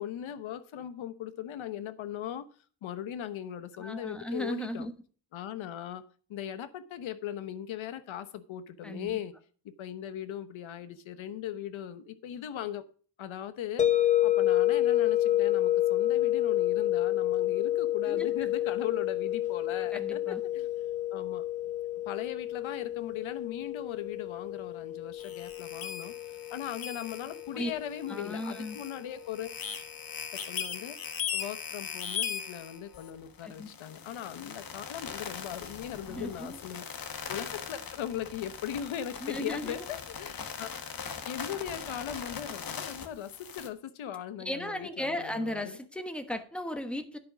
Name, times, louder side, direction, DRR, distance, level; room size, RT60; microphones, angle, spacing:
voice 1, 0.0-2.5 2.8-4.9 5.3-9.3 9.6-12.9 13.2-20.7 21.1-21.5 22.1-26.1 26.5-29.5 30.5-31.0 31.3-40.7 41.3-45.8, left 10 dB, 90° left, 1.0 m, -39 dB
voice 2, 3.8-4.9 8.8-9.2 18.1-18.3 19.8-20.4 27.5-27.7 28.1-28.8 33.4-33.7 36.1-36.6 39.2-39.9 44.4-47.2, left 1 dB, ahead, 1.1 m, -36 dB
sound 1, 13.8-28.7, left 13 dB, 20° left, 0.4 m, -29 dB
sound 2, 25.2-43.7, left 7 dB, 50° left, 1.3 m, -40 dB
10.5 x 5.4 x 6.1 m
wide cardioid pair, 140°, 46 cm